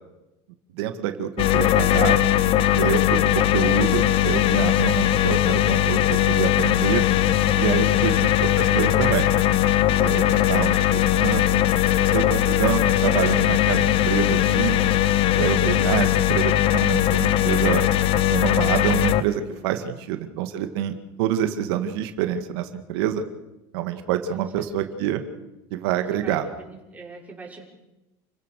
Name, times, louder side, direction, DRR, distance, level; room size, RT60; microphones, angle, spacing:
voice 1, 0.8-2.2 2.7-7.0 7.6-9.3 9.9-14.9 15.3-17.8 18.3-23.2 23.7-25.2 25.7-26.5, right 11 dB, 80° right, 7 dB, 2.1 m, -27 dB
sound 1, 1.4-19.2, left 12 dB, 45° left, 0.9 m, -20 dB
voice 2, 8.5-9.2 19.4-20.0 24.3-24.7 26.1-27.6, right 4 dB, 10° right, -2 dB, 5.6 m, -45 dB
29.5 x 16.0 x 6.6 m, 0.97 s
supercardioid pair, 140°, 13 cm